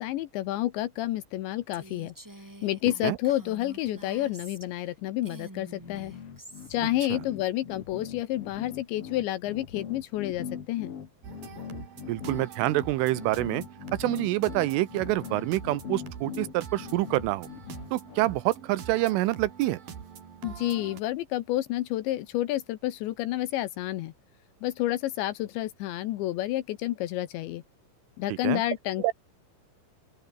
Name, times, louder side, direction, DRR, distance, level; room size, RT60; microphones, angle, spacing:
voice 1, 0.0-2.1 2.6-6.1 6.7-10.9 20.4-24.1 24.6-27.6 28.2-29.1, left 15 dB, 75° left, 3.1 m, -30 dB
Female speech woman speaking, 1.7-4.9 5.2-6.8, right 1 dB, 25° right, 0.4 m, -47 dB
sound 1, 5.8-18.3, left 7 dB, 50° left, 1.8 m, -41 dB
sound 2, 11.2-21.0, right 7 dB, 50° right, 4.4 m, -44 dB
voice 2, 12.1-13.6 14.0-17.5 17.9-19.8 28.4-28.6 29.0-29.1, right 17 dB, 80° right, 3.6 m, -27 dB
open air
omnidirectional pair, 5.7 m